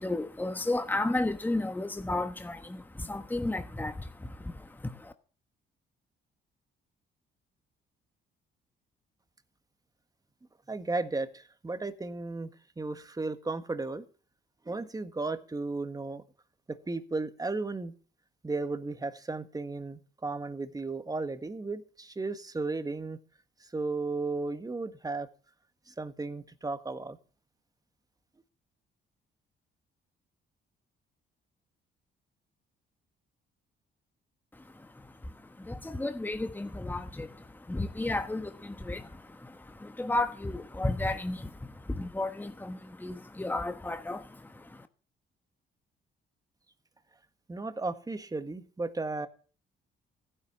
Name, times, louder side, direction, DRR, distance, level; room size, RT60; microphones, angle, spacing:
voice 1, 0.0-5.1 34.5-44.9, left 2 dB, 10° left, 1.2 m, -34 dB
voice 2, 10.7-12.5 12.8-14.1 14.7-16.2 16.7-17.9 18.4-23.2 23.6-25.3 25.9-27.2 47.5-49.3, right 3 dB, 20° right, 1.7 m, -34 dB
15.5 x 9.9 x 7.0 m
cardioid pair, 90°, 20 cm